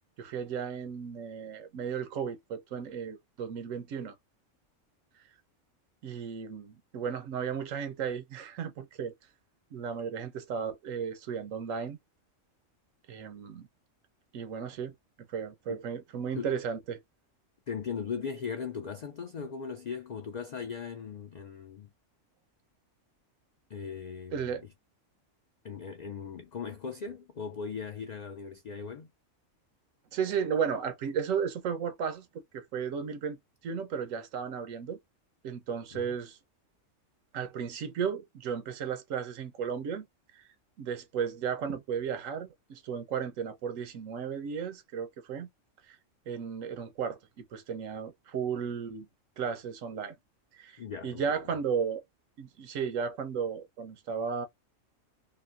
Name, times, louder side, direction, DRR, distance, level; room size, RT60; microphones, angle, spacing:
voice 1, 0.2-4.1 6.0-9.1 9.7-12.0 13.1-13.7 14.3-14.9 15.3-17.0 24.3-24.6 30.1-32.3 32.5-35.0 35.4-36.4 37.3-40.1 40.3-40.4 40.8-45.5 45.8-46.0 46.3-49.1 49.4-50.2 50.5-52.0 52.4-54.5, right 7 dB, 90° right, 1.1 m, -34 dB
voice 2, 17.7-21.9 23.7-24.6 25.6-29.1 35.9-36.2 50.8-51.2, left 6 dB, 90° left, 0.3 m, -38 dB
3.0 x 2.6 x 2.4 m
omnidirectional pair, 1.3 m